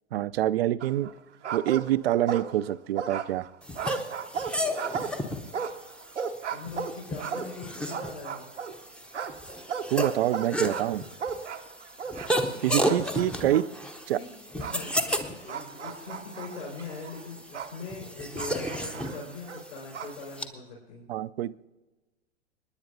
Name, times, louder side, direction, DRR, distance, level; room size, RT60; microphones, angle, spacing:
voice 1, 0.1-1.1 1.5-3.5 9.9-11.0 12.6-13.6 14.1-14.2 21.1-21.7, right 13 dB, 55° right, 16 dB, 0.5 m, -26 dB
sound 1, 0.8-1.2 1.4-2.7 3.0-8.8 9.1-12.5 12.8-13.7 14.6-14.8 15.5-17.8 18.4-20.2, right 6 dB, 80° right, 0.9 m, -35 dB
sound 2, 3.6-20.5, equal, 5° left, 0.7 m, -34 dB
voice 2, 6.5-8.5 13.5-13.6 14.1-21.0, left 4 dB, 65° left, -3 dB, 4.8 m, -41 dB
27.0 x 10.0 x 2.7 m, 1.1 s
figure-of-eight pair, 95°, 35 cm